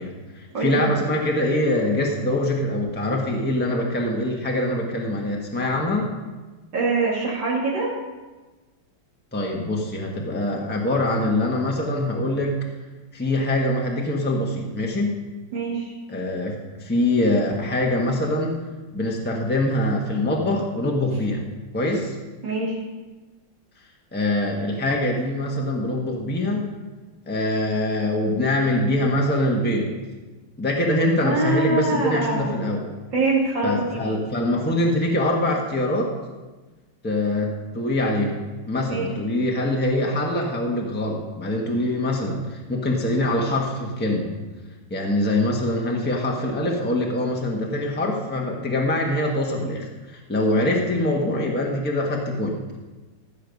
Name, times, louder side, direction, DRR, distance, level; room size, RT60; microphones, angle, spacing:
voice 1, 0.0-6.1 9.3-12.5 13.1-15.2 16.1-18.6 18.9-21.4 21.7-22.1 24.1-26.7 27.3-29.9 30.6-32.8 33.6-36.1 37.0-44.3 44.9-52.8, left 1 dB, 5° left, -1 dB, 1.3 m, -24 dB
voice 2, 0.5-0.9 6.7-7.9 15.5-15.9 22.4-22.8 31.2-32.5 33.1-34.1 38.9-39.1, right 3 dB, 75° right, -6 dB, 2.9 m, -24 dB
14.5 x 6.8 x 5.4 m, 1.2 s
omnidirectional pair, 2.0 m